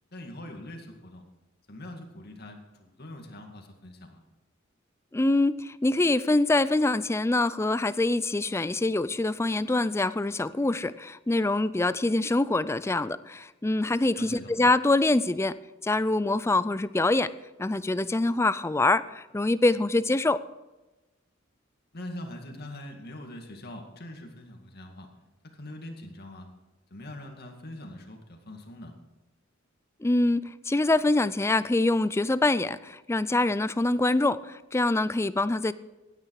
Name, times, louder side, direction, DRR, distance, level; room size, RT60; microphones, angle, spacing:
voice 1, 0.1-1.2 1.7-4.2 14.1-14.5 21.9-25.1 25.5-26.5 26.9-29.0, left 1 dB, 55° left, 3 dB, 2.2 m, -43 dB
voice 2, 5.1-15.6 15.8-17.3 17.6-20.4 30.0-35.7, left 2 dB, 15° left, 16 dB, 0.4 m, -25 dB
16.0 x 9.9 x 4.8 m, 1.1 s
head